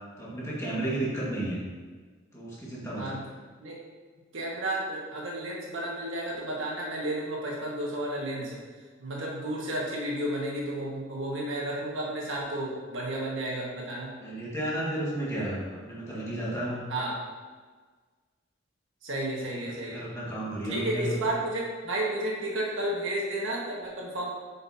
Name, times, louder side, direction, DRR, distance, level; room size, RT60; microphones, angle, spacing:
voice 1, 0.2-1.6 2.3-3.2 14.2-16.9 19.5-21.2, right 1 dB, 15° left, -7 dB, 1.8 m, -33 dB
voice 2, 4.3-8.6 9.0-14.2 16.9-17.2 19.0-20.1 20.7-24.3, right 1 dB, 80° right, -3 dB, 1.7 m, -32 dB
8.7 x 5.6 x 2.8 m, 1.4 s
head